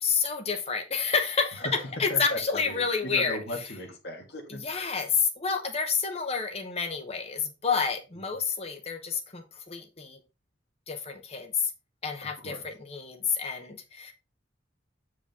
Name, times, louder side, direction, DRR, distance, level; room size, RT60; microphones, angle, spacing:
voice 1, 0.0-1.7 2.0-3.4 4.5-10.2 10.9-11.7 12.0-14.1, left 5 dB, 35° left, 5 dB, 0.9 m, -29 dB
voice 2, 2.1-4.9 12.2-12.7, left 1 dB, 60° left, 3 dB, 1.7 m, -37 dB
7.6 x 4.9 x 3.5 m, 0.28 s
head